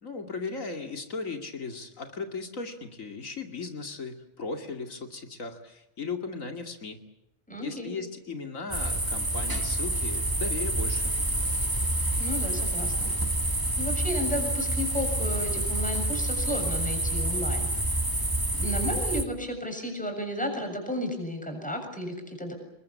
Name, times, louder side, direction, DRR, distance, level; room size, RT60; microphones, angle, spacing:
voice 1, 0.0-7.0 7.6-11.1, left 4 dB, 90° left, 4 dB, 2.9 m, -37 dB
voice 2, 7.5-7.9 12.2-13.1 13.5-18.0 18.4-22.6, left 1 dB, 5° left, 4 dB, 6.9 m, -33 dB
sound 1, 8.7-19.2, right 1 dB, 15° right, 2.2 m, -28 dB
28.0 x 21.5 x 8.6 m, 0.85 s
omnidirectional pair, 1.3 m